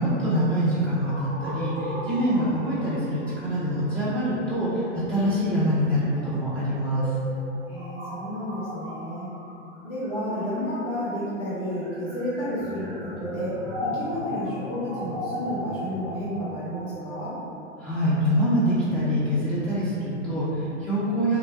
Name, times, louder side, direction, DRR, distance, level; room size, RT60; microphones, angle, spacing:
voice 1, 0.0-7.1 17.8-21.4, equal, 5° left, -15 dB, 0.4 m, -25 dB
sound 1, 1.0-10.9 11.6-18.6, equal, 40° right, 0.6 m, -38 dB
voice 2, 7.7-9.3 9.8-17.3, equal, 65° left, -12 dB, 0.9 m, -31 dB
sound 2, 12.6-16.9, left 1 dB, 90° left, 0.7 m, -40 dB
2.2 x 2.1 x 2.8 m, 2.8 s
figure-of-eight pair, 90°, 36 cm